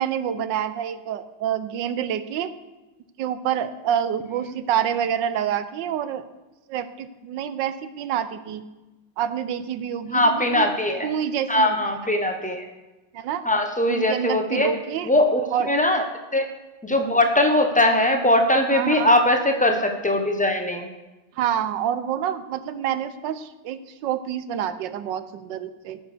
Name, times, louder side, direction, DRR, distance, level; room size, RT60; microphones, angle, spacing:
voice 1, 0.0-2.5 3.2-6.3 6.7-8.6 9.2-10.7 11.0-11.8 12.0-12.1 13.1-13.4 13.9-15.1 15.5-15.7 18.7-19.1 21.4-26.0, right 9 dB, 80° right, 12 dB, 1.4 m, -27 dB
voice 2, 10.1-11.1 11.5-12.7 13.4-14.7 15.0-16.0 16.3-16.5 16.8-20.9, left 1 dB, 5° left, 4 dB, 0.7 m, -20 dB
14.0 x 6.2 x 6.7 m, 1.1 s
omnidirectional pair, 2.0 m